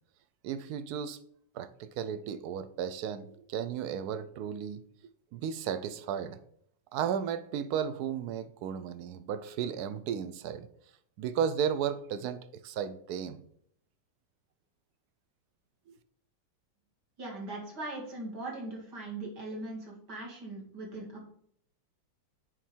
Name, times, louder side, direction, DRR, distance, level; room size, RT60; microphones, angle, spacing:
voice 1, 0.4-1.2 1.5-4.8 5.3-6.4 6.9-10.7 11.2-13.4, right 8 dB, 70° right, 12 dB, 0.9 m, -34 dB
voice 2, 17.2-21.2, right 2 dB, 55° right, -1 dB, 2.7 m, -40 dB
9.1 x 3.9 x 4.4 m, 0.66 s
omnidirectional pair, 2.2 m